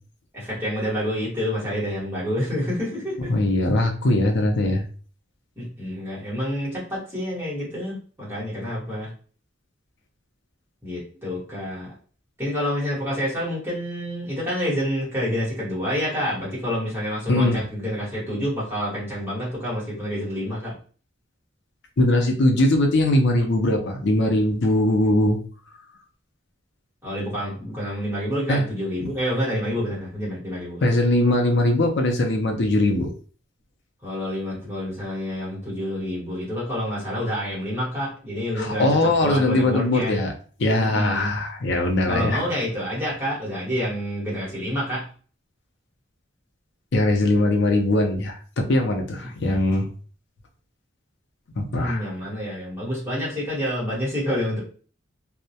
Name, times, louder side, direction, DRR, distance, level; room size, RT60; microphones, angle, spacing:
voice 1, 0.3-3.3 5.6-9.1 10.8-12.0 12.4-20.7 27.0-30.8 34.0-40.2 40.8-41.3 42.1-45.0 49.4-49.7 51.7-54.6, equal, 10° right, -7 dB, 1.1 m, -28 dB
voice 2, 3.3-4.8 17.3-17.6 22.0-25.4 28.5-28.7 29.0-29.1 30.8-33.1 38.6-40.3 40.6-42.4 46.9-49.9 51.6-52.1, left 1 dB, 60° left, 4 dB, 0.5 m, -21 dB
2.2 x 2.0 x 2.7 m, 0.42 s
head